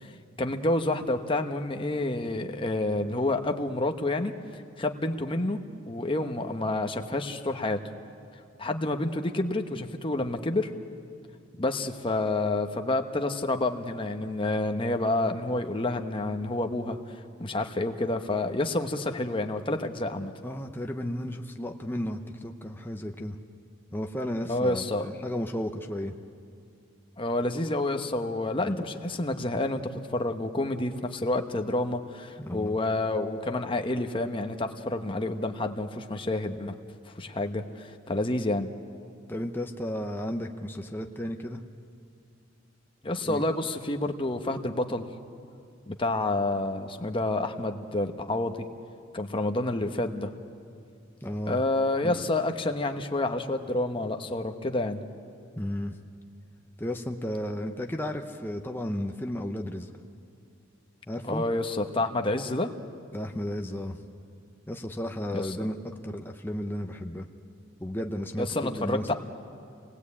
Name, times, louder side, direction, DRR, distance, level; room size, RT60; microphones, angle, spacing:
voice 1, 0.4-4.3 4.8-5.6 5.9-7.8 8.6-10.7 11.6-17.0 17.4-20.3 24.5-25.1 27.2-29.8 30.1-36.7 37.2-38.7 43.0-45.1 45.9-48.7 49.1-50.3 51.5-55.0 61.2-62.7 65.3-65.6 68.4-69.1, left 2 dB, 25° left, 5 dB, 1.1 m, -29 dB
voice 2, 20.4-23.4 23.9-26.1 28.6-28.8 32.4-32.8 39.3-41.6 43.2-43.4 51.2-51.6 52.0-52.2 55.6-55.9 56.8-59.9 61.1-61.4 63.1-64.0 64.7-67.3 67.8-69.1, left 1 dB, 10° left, 3 dB, 0.8 m, -33 dB
27.0 x 19.5 x 8.5 m, 2.4 s
head